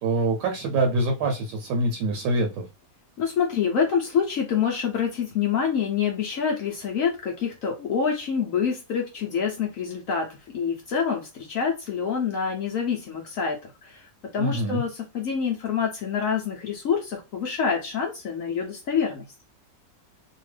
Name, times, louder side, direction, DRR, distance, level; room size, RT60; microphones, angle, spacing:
voice 1, 0.0-2.6 14.4-14.8, right 2 dB, 75° right, 3 dB, 1.2 m, -25 dB
voice 2, 3.2-19.2, left 6 dB, 65° left, 1 dB, 0.8 m, -26 dB
2.8 x 2.3 x 3.2 m, 0.28 s
omnidirectional pair, 1.9 m